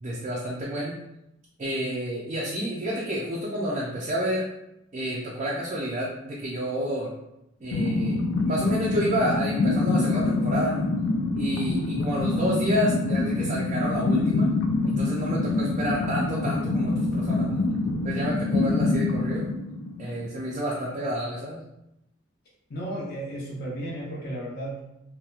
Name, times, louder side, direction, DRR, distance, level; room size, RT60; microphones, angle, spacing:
voice 1, 0.0-1.0 1.6-4.5 4.9-7.1 7.6-10.8 11.4-14.5 14.9-17.6 18.0-19.4 20.0-21.6, equal, 35° right, -4 dB, 0.4 m, -29 dB
sound 1, 7.7-20.4, left 2 dB, 80° left, 0.3 m, -25 dB
voice 2, 22.7-24.8, right 1 dB, 55° left, -5 dB, 0.7 m, -34 dB
2.8 x 2.1 x 2.3 m, 0.87 s
head